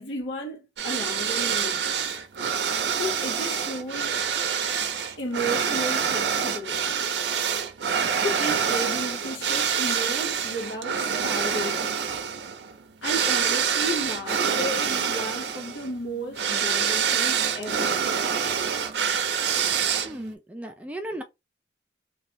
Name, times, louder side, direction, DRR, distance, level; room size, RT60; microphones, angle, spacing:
voice 1, 0.0-2.2 2.7-4.2 5.2-7.1 8.2-12.0 13.0-18.0, equal, 80° left, 0.7 m, -34 dB
sound 1, 0.8-20.3, right 7 dB, 70° right, 0.5 m, -26 dB
voice 2, 20.0-21.2, right 1 dB, 5° right, 0.3 m, -35 dB
2.7 x 2.2 x 3.0 m
head